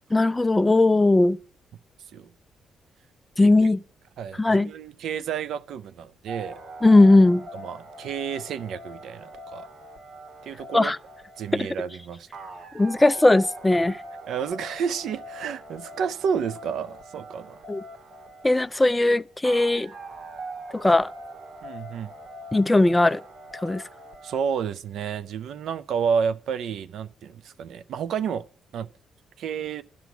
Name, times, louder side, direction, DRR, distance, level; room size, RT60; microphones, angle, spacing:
voice 1, 0.1-1.4 3.4-3.8 4.4-4.7 6.8-7.5 10.7-11.0 11.5-11.7 12.7-14.0 17.7-17.8 18.4-19.9 20.7-21.1 22.5-23.2 23.6-23.8, left 2 dB, 10° left, 0.4 m, -18 dB
voice 2, 4.2-6.6 7.5-9.7 10.4-10.9 11.4-12.3 14.3-17.6 21.6-22.1 24.2-28.5 28.7-28.9 29.4-29.8, right 7 dB, 75° right, 0.5 m, -30 dB
sound 1, 6.3-24.4, right 1 dB, 55° right, 2.0 m, -42 dB
12.0 x 6.1 x 8.1 m
cardioid pair, 110°, 0 cm